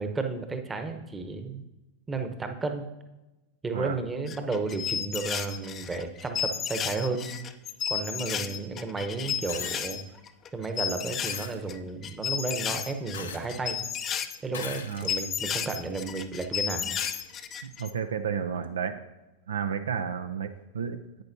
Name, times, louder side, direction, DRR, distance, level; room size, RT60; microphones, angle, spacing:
voice 1, 0.0-1.7 2.1-2.9 3.6-7.3 7.9-10.0 10.5-13.8 14.4-17.0, right 3 dB, 15° right, 6 dB, 1.0 m, -33 dB
sound 1, 4.3-10.0 10.3-11.7 12.0-17.9, left 8 dB, 30° left, 0.5 m, -33 dB
sound 2, 9.5-10.0 11.3-11.6 13.1-13.8 14.5-15.2 15.9-16.0 17.0-17.2 18.6-18.7, left 6 dB, 75° left, 0.8 m, -40 dB
voice 2, 17.6-19.0 19.5-21.2, right 7 dB, 75° right, 9 dB, 0.4 m, -32 dB
10.5 x 8.6 x 2.7 m, 1.0 s
figure-of-eight pair, 90°, 0 cm